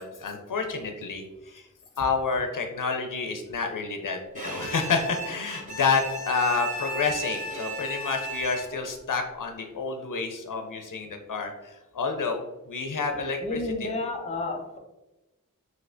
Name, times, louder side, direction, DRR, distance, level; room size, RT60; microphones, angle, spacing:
voice 1, 0.0-1.7 2.0-13.9, left 4 dB, 75° left, 4 dB, 0.5 m, -29 dB
Bowed string instrument, 4.3-8.9, right 2 dB, 25° right, 1.3 m, -35 dB
voice 2, 13.4-14.8, left 2 dB, 20° left, 2 dB, 0.6 m, -31 dB
3.1 x 3.0 x 2.5 m, 1.0 s
wide cardioid pair, 45°, 33 cm